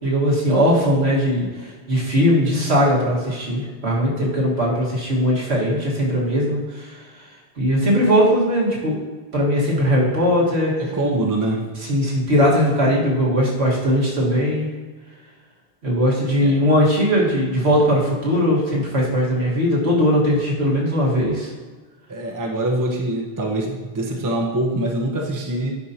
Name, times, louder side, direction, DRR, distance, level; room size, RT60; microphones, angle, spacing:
voice 1, 0.0-7.2 7.6-8.9 9.3-10.7 11.9-14.7 15.8-21.5, equal, 80° right, -5 dB, 2.0 m, -19 dB
voice 2, 10.8-11.7 16.4-16.5 22.1-25.7, right 1 dB, 20° right, 0 dB, 0.7 m, -24 dB
9.4 x 5.5 x 2.8 m, 1.4 s
omnidirectional pair, 1.1 m